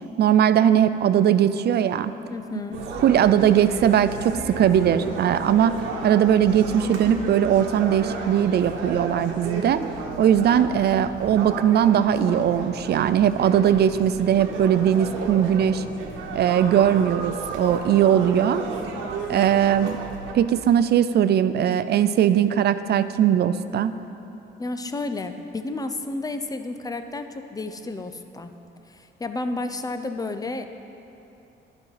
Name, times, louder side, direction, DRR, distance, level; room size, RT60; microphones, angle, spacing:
voice 1, 0.2-2.1 3.0-9.8 10.2-15.8 16.3-18.6 19.3-20.0 20.3-24.0, right 9 dB, 55° right, 13 dB, 0.4 m, -20 dB
voice 2, 2.3-2.8 19.3-19.5 24.6-28.5 28.9-30.7, left 2 dB, 20° left, 8 dB, 0.6 m, -31 dB
sound 1, 2.7-20.3, right 4 dB, 90° right, 1.1 m, -33 dB
11.0 x 5.4 x 5.7 m, 2.9 s
cardioid pair, 90°, 20 cm